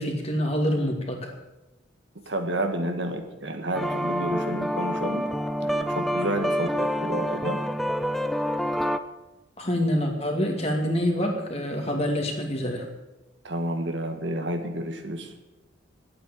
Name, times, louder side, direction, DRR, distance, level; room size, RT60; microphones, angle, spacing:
voice 1, 0.0-1.3 9.6-12.9, equal, 30° left, 2 dB, 2.4 m, -26 dB
voice 2, 2.2-5.2 5.6-7.6 13.4-15.3, right 1 dB, 65° right, 5 dB, 1.8 m, -30 dB
sound 1, 3.7-9.0, equal, ahead, 0.5 m, -27 dB
12.0 x 9.0 x 9.3 m, 1.0 s
head